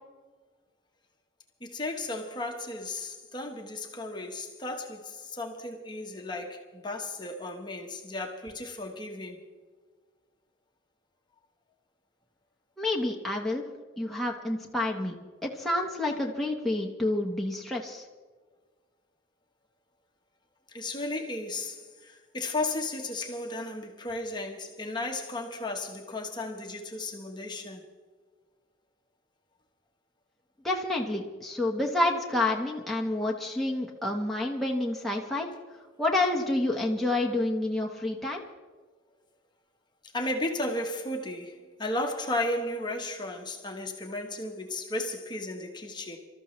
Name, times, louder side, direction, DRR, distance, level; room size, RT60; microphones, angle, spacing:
voice 1, 1.6-9.4 20.7-27.8 40.1-46.2, left 2 dB, 20° left, 2 dB, 1.2 m, -34 dB
voice 2, 12.8-13.6 14.0-15.1 15.4-18.0 30.6-35.5 36.0-38.4, left 2 dB, ahead, -2 dB, 1.2 m, -29 dB
26.5 x 13.5 x 3.2 m, 1.4 s
head